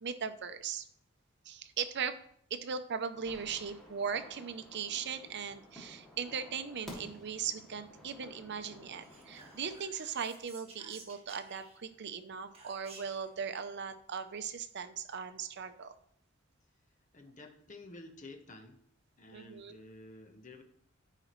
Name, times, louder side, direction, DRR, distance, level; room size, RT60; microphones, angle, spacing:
voice 1, 0.0-0.9 1.5-2.2 2.5-15.9 19.3-19.8, right 6 dB, 55° right, 10 dB, 0.6 m, -39 dB
sound 1, 3.1-9.8, equal, ahead, 2.4 m, -53 dB
Whispering, 9.0-12.0 12.5-13.3, right 3 dB, 30° right, 1.7 m, -55 dB
voice 2, 17.1-18.8 19.2-20.6, left 2 dB, 40° left, 4 dB, 1.1 m, -51 dB
14.0 x 4.9 x 3.1 m, 0.65 s
head